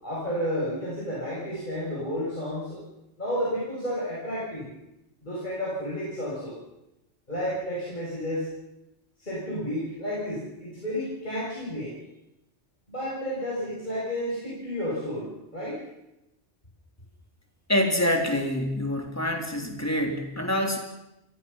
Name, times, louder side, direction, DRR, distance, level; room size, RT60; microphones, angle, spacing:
voice 1, 0.0-2.8 3.2-4.7 5.2-6.6 7.3-8.5 9.2-11.9 12.9-15.8, equal, 40° left, -7 dB, 7.3 m, -31 dB
voice 2, 17.7-20.8, left 1 dB, 10° left, 2 dB, 3.5 m, -26 dB
28.5 x 21.5 x 5.8 m, 0.90 s
omnidirectional pair, 1.3 m